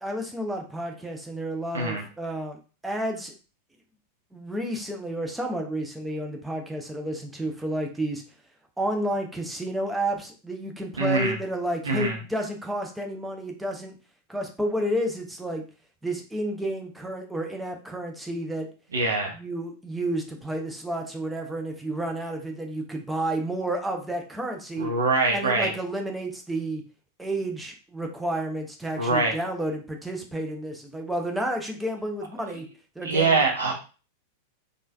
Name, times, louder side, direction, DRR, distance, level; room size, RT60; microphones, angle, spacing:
voice 1, 0.0-2.6 2.8-3.3 4.3-8.2 8.8-13.9 14.3-15.6 16.0-18.7 19.3-24.9 25.3-26.8 27.2-32.7 33.0-33.4, right 1 dB, 5° right, 2 dB, 0.6 m, -31 dB
voice 2, 11.0-11.4 11.8-12.2 18.9-19.3 24.8-25.7 29.0-29.3 33.0-33.7, right 3 dB, 70° right, 1 dB, 0.6 m, -23 dB
3.1 x 2.3 x 2.2 m, 0.35 s
figure-of-eight pair, 90°, 0 cm